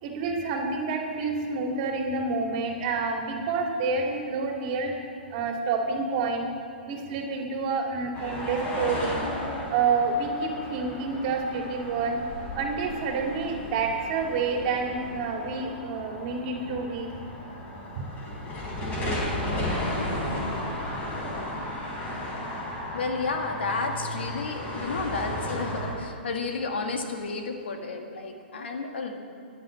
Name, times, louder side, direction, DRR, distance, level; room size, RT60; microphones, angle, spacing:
voice 1, 0.0-4.9 5.3-6.5 6.8-9.3 9.7-12.2 12.6-17.1, right 4 dB, 45° right, 2 dB, 2.4 m, -28 dB
sound 1, 8.1-25.9, left 1 dB, 25° left, 3.9 m, -34 dB
voice 2, 22.9-29.1, left 4 dB, 70° left, 4 dB, 1.8 m, -31 dB
11.5 x 10.0 x 7.4 m, 2.6 s
hypercardioid pair, 125°, 6 cm